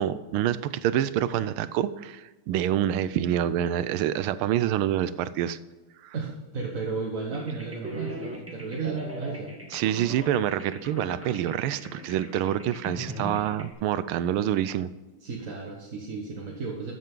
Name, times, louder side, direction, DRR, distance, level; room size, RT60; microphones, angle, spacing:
voice 1, 0.0-5.6 6.0-6.1 9.7-14.9, right 11 dB, 90° right, 15 dB, 1.5 m, -27 dB
voice 2, 6.1-9.5 15.2-16.9, right 4 dB, 45° right, -1 dB, 1.6 m, -33 dB
sound 1, 7.3-13.7, equal, 5° right, 1.8 m, -39 dB
13.5 x 8.2 x 3.8 m, 1.2 s
omnidirectional pair, 2.3 m